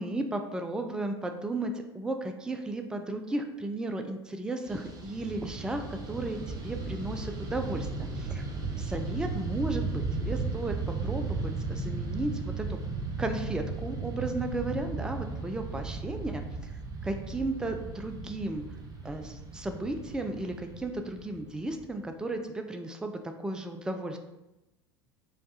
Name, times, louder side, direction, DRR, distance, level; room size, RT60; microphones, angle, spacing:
voice 1, 0.0-7.9 8.2-8.4 8.8-12.8 13.2-16.7 17.0-18.6 19.0-24.2, right 2 dB, 5° right, 6 dB, 0.3 m, -34 dB
Fixed-wing aircraft airplane, 4.6-22.1, right 3 dB, 25° right, 0.8 m, -36 dB
5.2 x 2.3 x 2.7 m, 0.98 s
hypercardioid pair, 80°, 14 cm